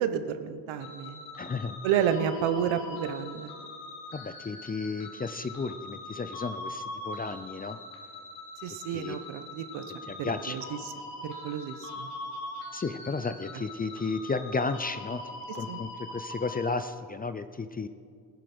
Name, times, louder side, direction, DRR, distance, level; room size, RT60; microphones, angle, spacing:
voice 1, 0.0-1.2 1.8-3.5 8.6-9.8 10.2-10.9 11.2-12.1 15.7-15.8, right 8 dB, 70° right, 9 dB, 1.3 m, -30 dB
sound 1, 0.8-16.7, left 2 dB, 80° left, 2.9 m, -42 dB
voice 2, 1.4-1.8 4.1-7.8 8.9-9.2 10.1-10.6 12.7-17.9, left 4 dB, 20° left, 11 dB, 0.6 m, -33 dB
18.0 x 10.5 x 6.2 m, 2.2 s
supercardioid pair, 90°, 49 cm